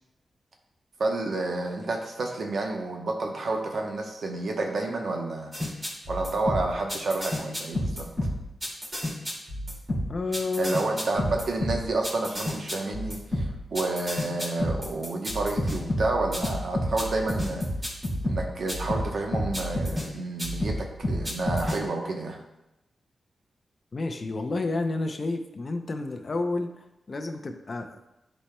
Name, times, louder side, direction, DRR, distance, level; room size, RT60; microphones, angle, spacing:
voice 1, 1.0-5.5 6.1-8.3 10.6-17.6 18.2-22.4, right 2 dB, 60° right, 2 dB, 1.0 m, -30 dB
sound 1, 5.5-20.1 20.4-21.8, left 1 dB, 25° right, 2.4 m, -30 dB
voice 2, 10.1-10.8 23.9-27.9, left 3 dB, 40° left, 5 dB, 0.6 m, -30 dB
11.5 x 4.3 x 2.3 m, 0.91 s
wide cardioid pair, 135°, 0 cm